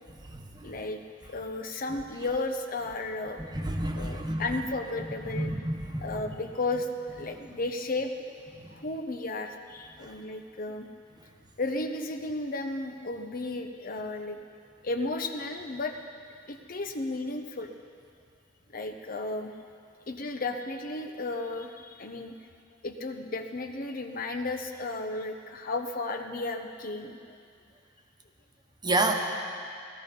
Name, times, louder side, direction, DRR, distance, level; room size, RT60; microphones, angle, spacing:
voice 1, 0.6-1.0 1.3-3.4 3.9-5.5 6.0-8.1 8.7-10.9 11.6-14.4 14.8-15.9 16.5-17.7 18.7-19.5 20.1-22.4 22.8-27.4, left 2 dB, 50° left, 5 dB, 0.8 m, -34 dB
voice 2, 3.5-4.4 5.3-6.1 28.8-29.1, right 2 dB, 20° right, 2 dB, 1.2 m, -28 dB
18.0 x 13.5 x 5.3 m, 2.3 s
head